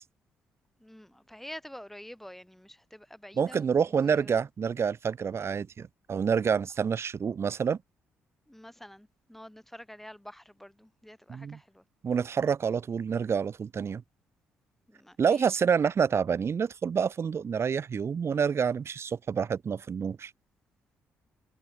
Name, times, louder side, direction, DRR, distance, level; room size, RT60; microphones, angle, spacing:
voice 1, 0.8-4.4 8.5-11.8 14.9-15.6, equal, 5° left, 4.8 m, -48 dB
voice 2, 3.4-7.8 11.3-11.6 12.0-14.0 15.2-20.3, right 6 dB, 50° right, 1.1 m, -28 dB
hypercardioid pair, 50°, 6 cm